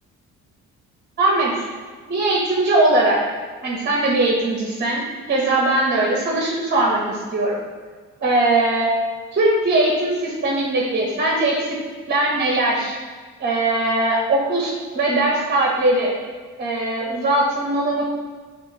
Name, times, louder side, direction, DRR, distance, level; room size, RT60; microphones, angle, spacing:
voice 1, 1.2-1.7 2.1-3.2 3.6-5.0 5.3-7.6 8.2-8.9 9.3-11.8 12.1-13.0 13.4-16.1 16.6-18.2, right 2 dB, 35° right, -2 dB, 0.8 m, -20 dB
6.9 x 2.5 x 2.7 m, 1.5 s
cardioid pair, 90°, 30 cm